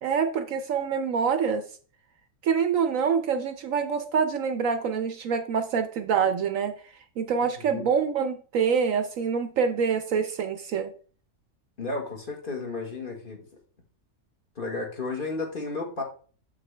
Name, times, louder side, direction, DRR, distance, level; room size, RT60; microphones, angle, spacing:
voice 1, 0.0-1.6 2.4-6.7 7.2-10.9, right 6 dB, 65° right, 1.0 m, -26 dB
voice 2, 7.6-7.9 11.8-13.4 14.5-16.0, left 3 dB, 35° left, 1.5 m, -33 dB
7.3 x 6.0 x 3.3 m
omnidirectional pair, 1.6 m